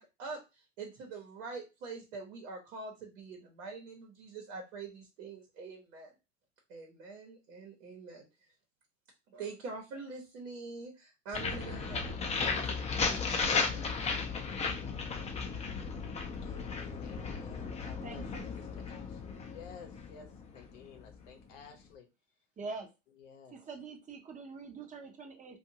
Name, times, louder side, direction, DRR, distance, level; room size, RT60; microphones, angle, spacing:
voice 1, 0.0-6.1 6.7-8.2 9.3-14.0, right 4 dB, 75° right, 1.0 m, -45 dB
sound 1, 11.3-21.1, left 4 dB, 20° left, 0.5 m, -35 dB
voice 2, 16.4-20.3 20.5-22.1 23.2-23.6, left 6 dB, 75° left, 0.8 m, -52 dB
voice 3, 18.0-18.4 22.6-22.9 23.5-25.6, right 4 dB, 20° right, 0.7 m, -44 dB
2.6 x 2.4 x 2.8 m
hypercardioid pair, 100°, 37 cm